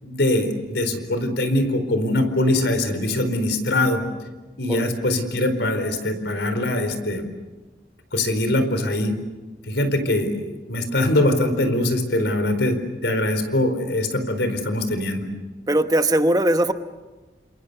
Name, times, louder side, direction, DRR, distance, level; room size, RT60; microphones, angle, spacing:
voice 1, 0.0-4.0 4.6-7.3 8.1-9.1 9.7-12.8 13.0-15.3, left 1 dB, 85° left, 8 dB, 4.5 m, -22 dB
voice 2, 15.7-16.7, right 1 dB, 20° right, 8 dB, 1.0 m, -19 dB
29.5 x 27.5 x 6.9 m, 1.2 s
head